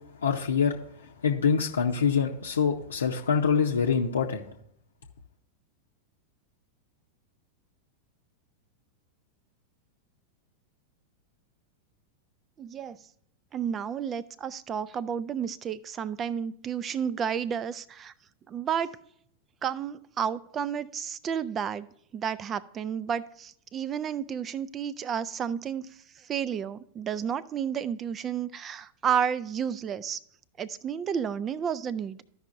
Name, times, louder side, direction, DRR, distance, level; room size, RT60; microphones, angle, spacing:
voice 1, 0.2-0.8 1.2-4.4, left 6 dB, 70° left, 0 dB, 0.7 m, -25 dB
voice 2, 12.6-13.0 13.5-18.1 18.5-18.9 19.6-21.9 22.1-25.9 26.2-30.2 30.6-32.2, right 8 dB, 25° right, 18 dB, 0.4 m, -31 dB
14.0 x 5.5 x 2.5 m, 0.68 s
figure-of-eight pair, 90°, 0 cm